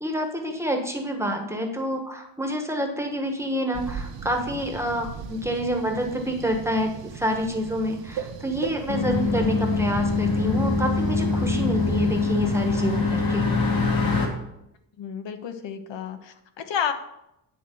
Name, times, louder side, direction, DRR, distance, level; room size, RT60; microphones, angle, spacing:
voice 1, 0.0-13.5, equal, 5° right, 3 dB, 1.2 m, -28 dB
sound 1, 3.7-13.0, right 6 dB, 85° right, 1.4 m, -38 dB
sound 2, 8.9-14.3, left 3 dB, 50° left, 2.0 m, -23 dB
voice 2, 15.0-16.9, left 8 dB, 85° left, 8 dB, 1.2 m, -31 dB
10.0 x 4.7 x 7.8 m, 0.83 s
wide cardioid pair, 175°, 43 cm